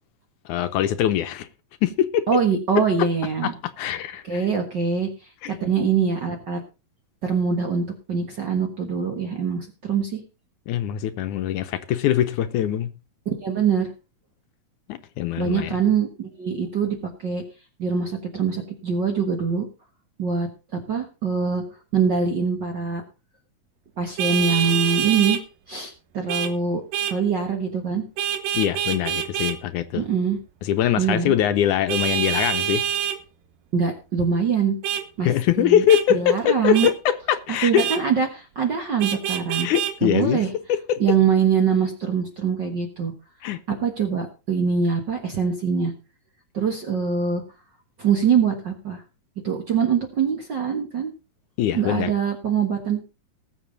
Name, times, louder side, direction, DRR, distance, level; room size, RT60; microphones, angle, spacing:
voice 1, 0.5-1.5 1.8-2.3 3.4-3.5 3.8-4.4 5.4-5.6 10.7-12.9 14.9-15.7 28.5-30.0 30.6-32.8 35.2-37.8 39.6-41.0 43.4-43.6 51.6-52.1, left 10 dB, 75° left, 2.1 m, -22 dB
voice 2, 2.3-3.5 4.2-5.1 5.5-6.6 7.2-10.2 13.2-13.9 15.4-17.0 17.2-17.4 17.8-19.7 20.2-21.6 21.9-23.0 24.0-25.4 25.7-26.8 27.1-28.0 29.9-30.4 31.0-31.3 33.7-34.8 35.2-35.8 36.1-36.9 37.6-39.7 40.0-40.5 41.0-43.1 43.7-45.9 46.5-47.4 48.0-49.0 49.4-51.1 51.7-53.0, right 6 dB, 45° right, 1.5 m, -23 dB
Vehicle horn car horn honking, 24.2-25.4 26.3-26.5 26.9-27.2 28.2-29.6 31.9-33.2 34.8-35.0 35.9-36.0 36.7-36.9 37.8-38.0 39.0-39.9, right 10 dB, 90° right, 2.8 m, -25 dB
19.5 x 7.2 x 4.0 m
omnidirectional pair, 3.8 m